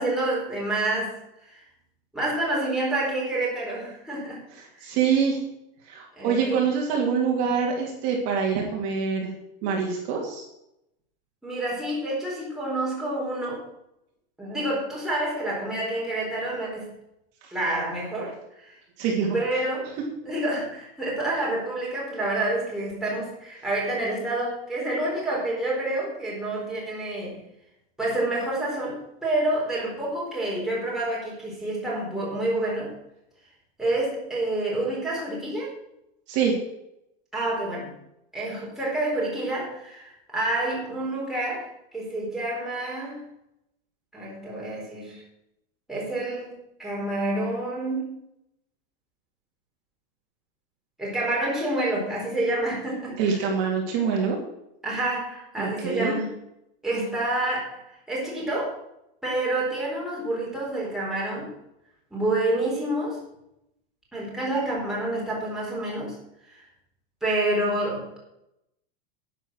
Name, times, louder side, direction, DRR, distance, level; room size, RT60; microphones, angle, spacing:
voice 1, 0.0-1.6 2.1-4.4 4.7-4.9 6.2-6.6 11.4-13.6 14.4-16.9 17.5-18.8 19.3-19.9 20.3-27.4 28.0-32.9 33.8-35.7 37.3-37.9 38.3-43.2 44.1-45.2 45.9-48.1 51.0-53.2 54.8-56.2 56.8-58.8 59.2-61.5 62.1-63.2 64.1-66.1 66.5-66.7 67.2-68.2, right 1 dB, ahead, -6 dB, 4.1 m, -28 dB
voice 2, 4.5-5.4 5.9-9.3 9.6-10.5 17.4-17.5 19.0-19.4 36.3-36.6 53.2-54.4 55.6-56.2, right 6 dB, 40° right, -1 dB, 2.9 m, -25 dB
10.5 x 10.0 x 6.4 m, 0.83 s
supercardioid pair, 180°, 29 cm